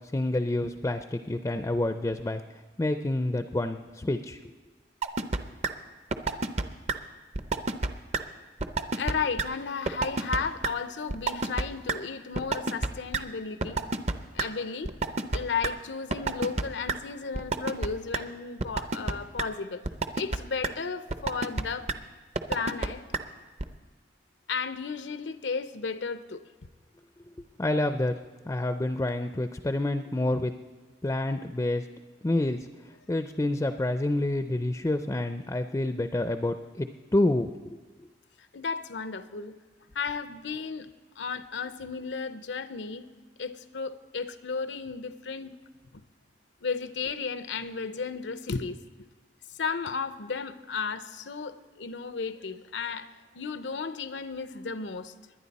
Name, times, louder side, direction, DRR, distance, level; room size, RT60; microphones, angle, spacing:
voice 1, 0.1-2.4 2.8-4.4 27.6-28.1 28.5-30.5 31.0-31.8 32.2-32.7 33.1-37.5, left 1 dB, 15° left, 9 dB, 0.4 m, -28 dB
sound 1, 5.0-5.4 5.6-5.7 6.1-6.6 6.9-7.0 7.3-7.9 8.1-8.2 8.6-9.1 9.4-9.5 9.9-10.4 10.6-10.7 11.1-11.6 11.9-12.0 12.3-12.9 13.1-13.2 13.6-14.4 14.8-15.7 16.1-16.6 16.9-17.0 17.3-17.9 18.1-18.2 18.6-19.1 19.4-19.5 19.8-20.4 20.6-20.7 21.1-21.6 21.9-22.0 22.4-22.9 23.1-23.2 23.6-23.7, right 3 dB, 40° right, 0.6 m, -27 dB
voice 2, 8.9-13.8 14.3-14.9 15.3-19.8 20.1-21.9 22.5-23.0 24.5-26.4 38.5-39.6 39.9-40.9 41.2-43.1 43.4-45.6 45.9-46.0 46.6-48.8 49.5-55.3, left 5 dB, 85° left, 12 dB, 0.7 m, -34 dB
21.5 x 9.9 x 4.1 m, 1.3 s
head